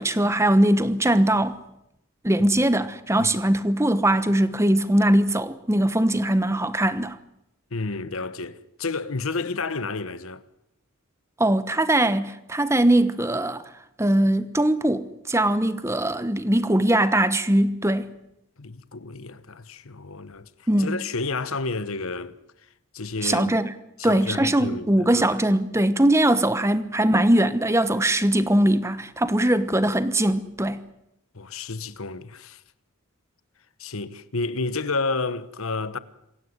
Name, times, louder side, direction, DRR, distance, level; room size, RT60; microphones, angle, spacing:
voice 1, 0.0-1.6 2.2-7.2 11.4-13.6 14.0-18.1 20.7-21.0 23.2-23.7 24.0-30.8, right 1 dB, 10° right, 1.1 m, -21 dB
voice 2, 7.7-10.4 18.6-22.4 22.9-23.5 24.0-25.3 31.3-32.6 33.8-36.0, left 3 dB, 70° left, 1.2 m, -31 dB
27.0 x 16.5 x 9.5 m
head